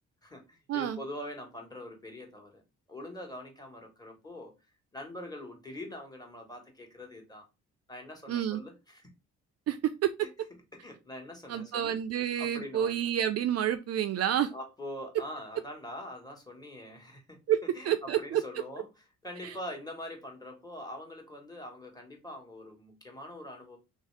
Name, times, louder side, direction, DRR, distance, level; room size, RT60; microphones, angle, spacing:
voice 1, 0.2-2.6 2.9-4.5 4.9-7.4 7.9-9.1 10.2-10.3 10.7-12.0 12.4-13.0 14.5-17.4 17.7-18.9 19.2-23.8, left 1 dB, 15° left, 1.3 m, -43 dB
voice 2, 8.3-8.6 9.7-10.1 11.5-14.5 17.5-17.6 17.8-18.4 19.4-19.5, right 10 dB, 55° right, 0.4 m, -29 dB
3.2 x 2.8 x 3.1 m
cardioid pair, 90°, 30 cm